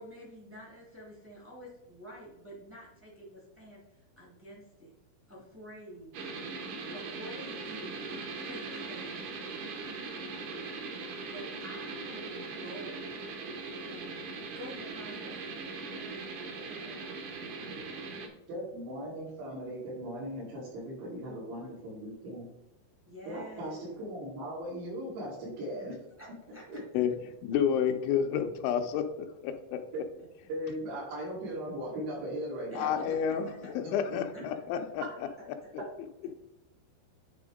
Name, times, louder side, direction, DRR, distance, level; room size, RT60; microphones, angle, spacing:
voice 1, 0.0-3.8 4.2-4.9 5.3-6.1 6.9-9.2 11.3-13.1 13.7-14.2 14.5-15.8 16.1-17.2 21.2-21.8 23.0-23.9 26.2-26.6 32.7-32.9 33.1-33.7 34.3-34.4, equal, 15° right, 0.4 m, -48 dB
sound 1, 6.1-18.3, right 4 dB, 70° right, 1.9 m, -40 dB
voice 2, 18.5-22.5 23.3-26.0 26.3-27.1 29.9-30.0 30.5-33.2 33.8-34.5 35.0-35.1, equal, 90° right, 5.5 m, -39 dB
voice 3, 27.4-29.8 32.8-35.0, left 8 dB, 90° left, 3.1 m, -30 dB
10.5 x 3.5 x 5.1 m
omnidirectional pair, 5.3 m